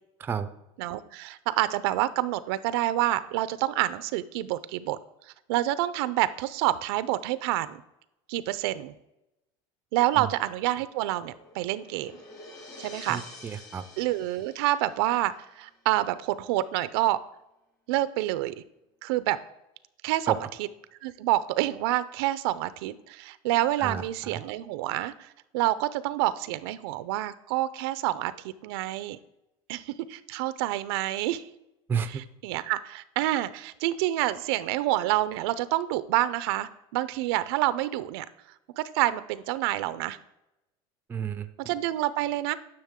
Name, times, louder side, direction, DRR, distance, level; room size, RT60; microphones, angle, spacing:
voice 1, 0.8-5.0 5.5-7.8 8.3-8.9 9.9-12.1 12.8-13.2 14.0-17.2 17.9-18.6 19.0-19.4 20.0-20.7 21.0-29.2 29.7-31.4 32.1-38.3 38.8-40.2 41.7-42.6, right 15 dB, 75° right, 15 dB, 0.5 m, -28 dB
sound 1, 10.3-15.5, left 2 dB, 25° left, 1.7 m, -49 dB
voice 2, 13.1-13.8 20.3-20.4 23.8-24.4 31.9-32.1 41.1-41.5, right 7 dB, 15° right, 11 dB, 0.5 m, -31 dB
10.5 x 6.2 x 3.6 m, 0.90 s
cardioid pair, 155°, 13 cm